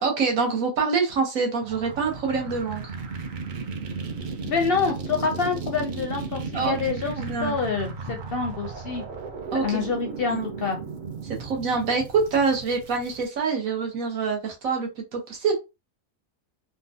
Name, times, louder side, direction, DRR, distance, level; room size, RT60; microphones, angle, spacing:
voice 1, 0.0-2.8 6.5-7.5 9.5-9.8 10.3-10.5 11.2-15.5, right 4 dB, 80° right, 1 dB, 1.4 m, -26 dB
sound 1, 1.6-13.3, right 4 dB, 60° right, 0.5 m, -35 dB
voice 2, 4.4-9.0 9.5-10.8, left 5 dB, 60° left, 4 dB, 0.6 m, -27 dB
3.7 x 2.3 x 2.7 m, 0.26 s
omnidirectional pair, 1.4 m